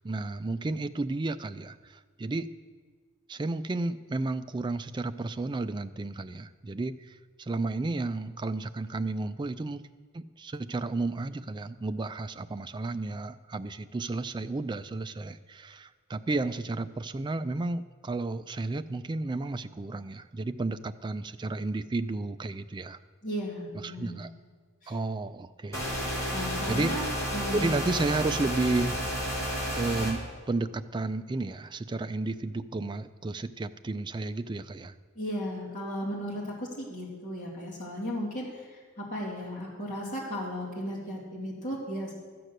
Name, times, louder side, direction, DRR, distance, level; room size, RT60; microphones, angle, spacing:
voice 1, 0.0-2.5 3.3-9.8 10.1-23.0 23.7-24.3 24.9-25.9 26.7-27.0 27.5-29.0 29.7-30.2 30.5-35.0, right 2 dB, 20° right, 11 dB, 0.3 m, -32 dB
voice 2, 23.2-24.2 24.8-24.9 26.3-27.1 27.3-27.8 35.2-42.1, equal, 40° left, -5 dB, 2.5 m, -35 dB
sound 1, 25.7-30.1, equal, 15° left, 2.4 m, -31 dB
13.0 x 7.7 x 6.6 m, 1.5 s
head